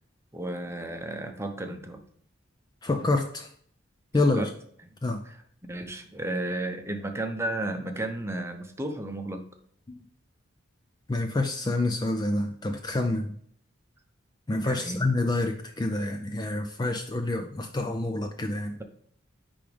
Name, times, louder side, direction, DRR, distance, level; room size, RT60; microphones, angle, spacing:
voice 1, 0.3-2.0 4.3-4.5 5.2-5.4 5.7-9.4 14.6-15.1, right 1 dB, 15° right, 6 dB, 0.7 m, -33 dB
voice 2, 2.8-3.5 4.1-4.5 5.0-5.2 9.9-10.0 11.1-13.3 14.5-18.8, left 2 dB, 20° left, 5 dB, 0.4 m, -27 dB
10.0 x 3.5 x 3.4 m, 0.63 s
head